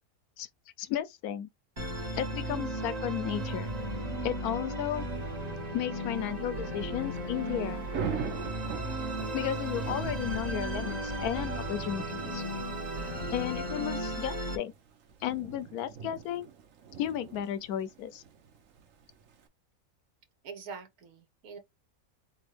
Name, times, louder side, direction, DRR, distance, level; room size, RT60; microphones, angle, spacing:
voice 1, 0.8-1.5 2.1-3.7 4.2-5.0 5.7-7.8 9.3-12.4 13.3-14.7 15.2-16.5 17.0-18.2, left 11 dB, 90° left, 1.1 m, -34 dB
Musical instrument, 1.8-14.6, right 1 dB, 30° right, 1.1 m, -35 dB
Thunder / Rain, 6.8-19.5, right 7 dB, 65° right, 1.2 m, -43 dB
voice 2, 20.4-21.6, right 5 dB, 80° right, 1.5 m, -44 dB
3.9 x 3.5 x 3.3 m
omnidirectional pair, 1.5 m